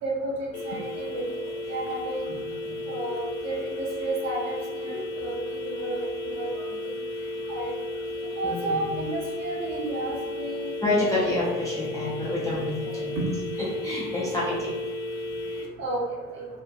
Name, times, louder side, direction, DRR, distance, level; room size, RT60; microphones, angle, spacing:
voice 1, 0.0-1.2 1.7-2.3 2.9-6.9 7.5-7.8 8.4-11.0 15.8-16.5, right 2 dB, 40° right, -3 dB, 0.8 m, -32 dB
sound 1, 0.5-15.7, left 1 dB, 80° left, 0.5 m, -34 dB
voice 2, 2.6-3.2 4.9-5.5 7.3-7.8 8.1-8.9 10.8-13.1 13.7-14.8 15.1-15.3 15.7-15.8, left 2 dB, 10° left, -9 dB, 0.4 m, -30 dB
2.8 x 2.3 x 2.3 m, 1.2 s
figure-of-eight pair, 65°, 42 cm